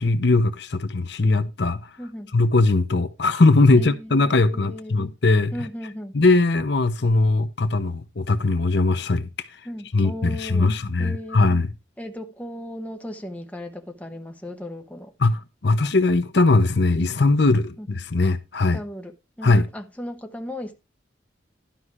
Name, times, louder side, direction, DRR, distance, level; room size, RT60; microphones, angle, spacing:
voice 1, 0.0-1.8 2.3-5.5 6.1-9.3 9.9-11.7 15.2-18.8 19.4-19.7, left 3 dB, 60° left, 0.7 m, -20 dB
voice 2, 2.0-2.3 3.7-5.0 5.5-6.2 9.6-10.7 11.0-11.4 12.0-15.1 17.8-18.0 18.7-20.7, left 1 dB, 5° left, 1.0 m, -36 dB
12.0 x 5.5 x 4.8 m
head